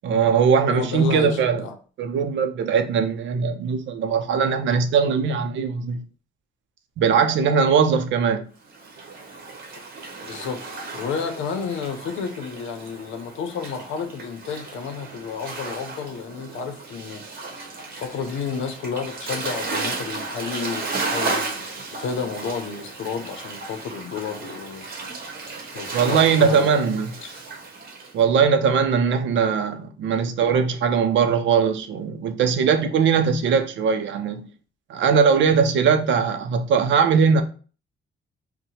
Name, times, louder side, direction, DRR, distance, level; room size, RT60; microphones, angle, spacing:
voice 1, 0.0-1.6 2.0-6.0 7.0-8.5 25.9-27.1 28.1-34.5 34.9-37.4, right 6 dB, 70° right, 0.5 m, -20 dB
voice 2, 0.7-1.8 10.2-10.6 10.9-17.6 17.9-21.7 21.9-24.9 25.7-26.9, left 6 dB, 80° left, 0.7 m, -31 dB
Waves surf, 8.7-28.1, right 3 dB, 50° right, 1.0 m, -34 dB
2.7 x 2.2 x 4.0 m
cardioid pair, 90°, 20 cm